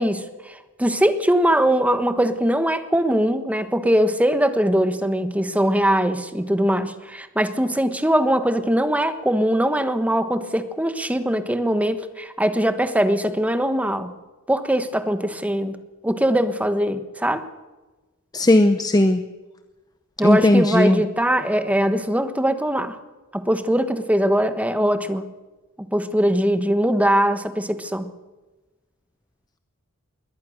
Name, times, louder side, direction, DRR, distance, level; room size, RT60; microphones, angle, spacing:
voice 1, 0.0-14.1 14.5-15.8 16.0-17.4 20.2-23.0 23.3-25.2 25.8-28.1, equal, 5° right, 10 dB, 1.3 m, -21 dB
voice 2, 18.3-19.2 20.2-21.0, left 1 dB, 20° left, 9 dB, 0.7 m, -17 dB
22.0 x 18.0 x 6.6 m, 1.2 s
head